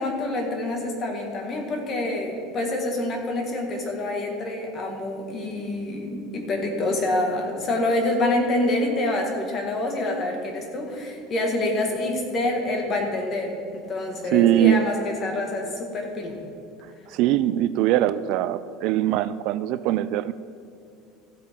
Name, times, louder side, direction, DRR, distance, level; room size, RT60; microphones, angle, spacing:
voice 1, 0.0-16.4, left 2 dB, 35° left, 2 dB, 1.8 m, -26 dB
voice 2, 14.3-14.8 17.1-20.3, right 13 dB, 55° right, 14 dB, 0.3 m, -21 dB
14.5 x 8.4 x 3.7 m, 2.4 s
cardioid pair, 145°, 0 cm